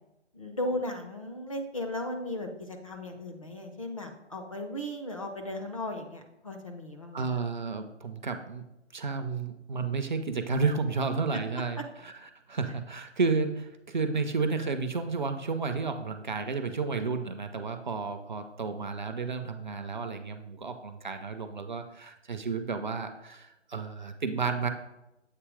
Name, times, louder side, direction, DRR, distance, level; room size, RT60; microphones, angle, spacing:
voice 1, 0.3-7.4, left 1 dB, 30° left, 3 dB, 0.5 m, -36 dB
voice 2, 7.1-8.6 8.9-12.1 12.5-24.7, right 4 dB, 40° right, 7 dB, 0.4 m, -32 dB
7.5 x 2.8 x 4.8 m, 0.91 s
figure-of-eight pair, 150°, 35 cm